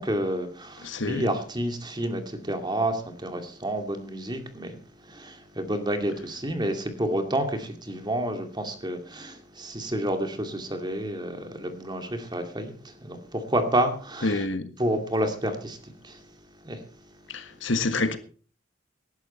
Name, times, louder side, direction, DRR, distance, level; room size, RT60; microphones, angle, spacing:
voice 1, 0.0-4.8 5.1-14.5 14.8-15.8 16.0-16.2 16.6-16.8, right 1 dB, 25° right, 2.4 m, -29 dB
voice 2, 0.8-1.3 14.2-14.7 17.3-18.2, left 2 dB, 80° left, 1.7 m, -27 dB
18.5 x 11.5 x 4.4 m
head